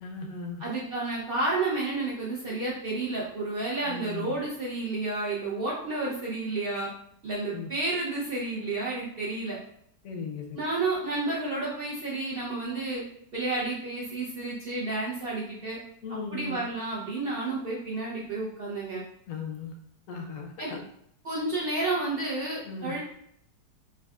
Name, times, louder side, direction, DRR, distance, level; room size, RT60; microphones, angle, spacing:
voice 1, 0.0-0.6 3.9-4.3 7.5-7.7 10.0-10.6 16.0-16.6 19.3-19.7 20.1-20.8 22.6-22.9, left 4 dB, 70° left, 2 dB, 0.8 m, -37 dB
voice 2, 0.6-6.9 7.2-9.6 10.5-13.0 13.3-15.8 16.3-19.0 20.6-20.7 21.2-23.0, right 2 dB, 70° right, -6 dB, 0.5 m, -31 dB
6.1 x 2.3 x 2.3 m, 0.71 s
omnidirectional pair, 2.0 m